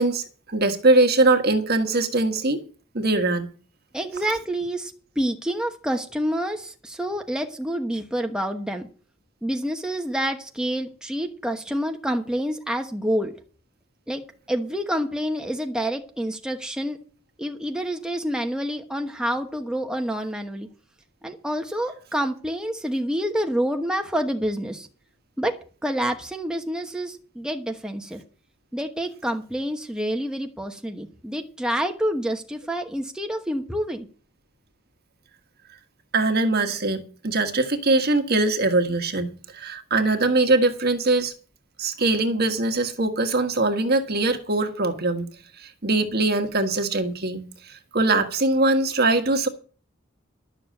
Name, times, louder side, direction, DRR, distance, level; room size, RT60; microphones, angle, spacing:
voice 1, 0.0-2.6 2.9-3.5 36.1-39.3 39.5-41.3 41.8-45.3 45.6-49.5, right 2 dB, 50° right, 1.6 m, -22 dB
voice 2, 3.9-8.9 9.4-13.3 14.1-14.2 14.5-17.0 17.4-20.7 21.2-24.9 25.4-25.5 25.8-28.2 28.7-34.1, equal, 5° right, 1.1 m, -28 dB
12.0 x 6.8 x 7.7 m
head